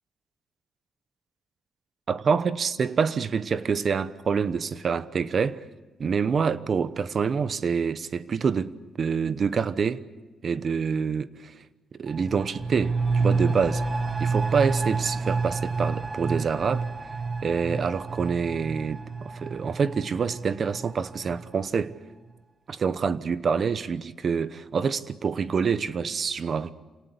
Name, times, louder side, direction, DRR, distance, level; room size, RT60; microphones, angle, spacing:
voice 1, 2.1-5.6 6.0-10.0 10.4-11.6 11.9-13.8 14.2-16.8 17.4-21.9 22.7-26.7, right 6 dB, 50° right, 0.9 m, -26 dB
sound 1, 12.1-21.5 21.8-21.9, right 4 dB, 25° right, 1.4 m, -29 dB
27.0 x 18.5 x 8.3 m
cardioid pair, 95°, 0 cm